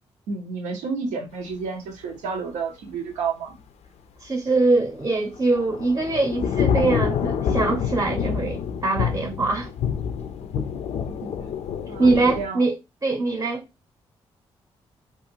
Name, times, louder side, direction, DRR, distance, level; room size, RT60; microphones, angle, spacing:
voice 1, 0.3-3.6 11.0-11.5 11.9-12.7, right 5 dB, 85° right, 0.6 m, -31 dB
voice 2, 4.2-9.7 10.6-10.7 12.0-12.8 13.0-13.6, right 3 dB, 25° right, 0.7 m, -23 dB
Thunder / Rain, 5.1-12.5, left 7 dB, 60° left, 0.4 m, -27 dB
2.4 x 2.4 x 2.9 m
supercardioid pair, 45°, 12 cm